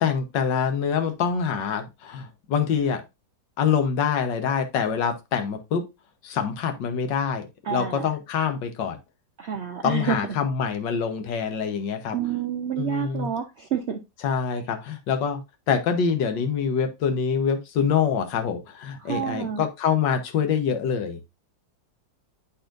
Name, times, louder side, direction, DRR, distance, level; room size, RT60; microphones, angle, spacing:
voice 1, 0.0-3.0 3.6-5.8 6.2-9.0 9.8-12.2 12.8-13.3 14.2-15.4 15.7-21.4, left 7 dB, 75° left, 1.7 m, -25 dB
voice 2, 7.6-8.1 9.4-10.2 12.1-14.0 19.0-19.6, right 8 dB, 80° right, 0.6 m, -28 dB
10.5 x 4.2 x 2.5 m
omnidirectional pair, 2.0 m